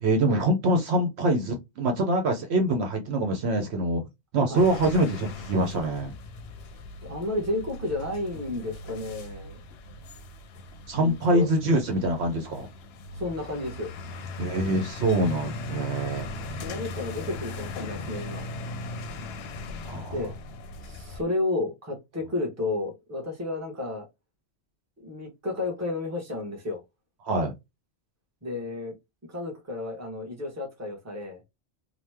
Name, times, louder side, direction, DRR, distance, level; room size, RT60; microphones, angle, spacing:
voice 1, 0.0-4.0 4.3-6.1 10.9-12.7 14.4-16.3 19.8-20.1 27.2-27.5, right 1 dB, 70° right, 0.8 m, -24 dB
sound 1, 4.5-21.2, left 2 dB, 65° left, 0.7 m, -39 dB
voice 2, 7.0-9.6 10.9-11.5 13.1-13.9 16.5-18.5 20.1-20.3 20.8-24.1 25.0-26.8 28.4-28.9 29.3-31.4, left 2 dB, 15° right, 0.9 m, -32 dB
3.0 x 2.1 x 3.3 m
omnidirectional pair, 1.2 m